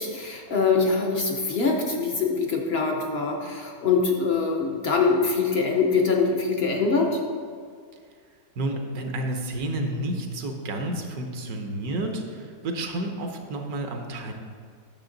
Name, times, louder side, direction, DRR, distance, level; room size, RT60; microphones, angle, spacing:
voice 1, 0.0-7.2, left 4 dB, 55° left, 1 dB, 0.7 m, -23 dB
voice 2, 8.6-14.3, right 1 dB, 70° right, 3 dB, 1.3 m, -30 dB
8.8 x 6.5 x 3.8 m, 2.1 s
omnidirectional pair, 1.7 m